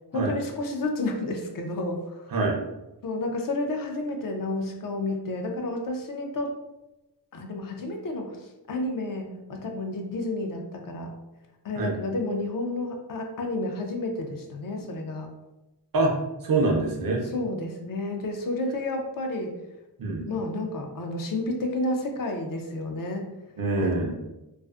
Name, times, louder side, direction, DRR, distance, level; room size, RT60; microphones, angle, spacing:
voice 1, 0.1-2.3 3.0-6.6 7.3-11.1 11.6-15.3 17.3-19.5 20.3-23.3 23.8-23.9, left 2 dB, 55° left, 3 dB, 0.4 m, -31 dB
voice 2, 16.4-17.2 20.0-20.3 23.6-24.1, right 3 dB, 60° right, 1 dB, 0.6 m, -24 dB
2.4 x 2.4 x 2.3 m, 0.98 s
wide cardioid pair, 130°, 40 cm